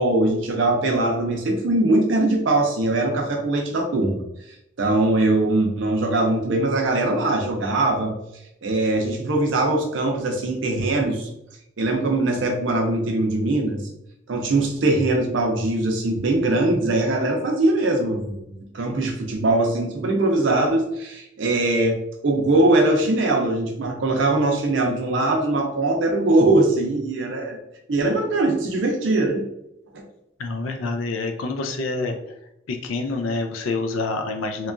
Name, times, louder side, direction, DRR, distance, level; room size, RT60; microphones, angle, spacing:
voice 1, 0.0-4.2 4.8-8.1 8.6-11.3 11.8-13.8 14.3-27.6 27.9-29.4, right 2 dB, 70° right, 2 dB, 0.5 m, -21 dB
voice 2, 30.4-32.2 32.7-34.7, left 3 dB, 85° left, 5 dB, 0.4 m, -27 dB
2.8 x 2.3 x 2.4 m, 0.80 s
head